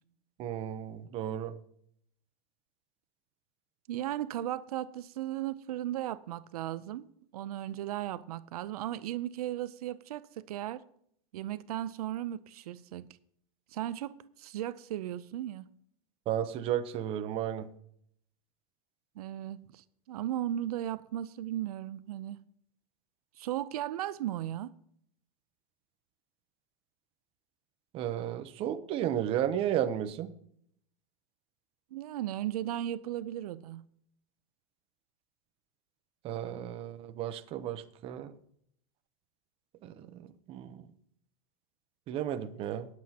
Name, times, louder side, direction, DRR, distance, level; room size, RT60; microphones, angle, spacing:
voice 1, 0.4-1.5 16.3-17.7 27.9-30.3 36.2-38.3 39.8-40.9 42.1-42.9, right 10 dB, 30° right, 0.7 m, -33 dB
voice 2, 3.9-7.0 7.3-10.8 11.3-13.2 13.7-14.1 14.4-15.7 19.2-22.4 23.4-24.7 31.9-33.8, right 12 dB, 85° right, 0.6 m, -36 dB
20.5 x 7.9 x 2.8 m
supercardioid pair, 155°, 19 cm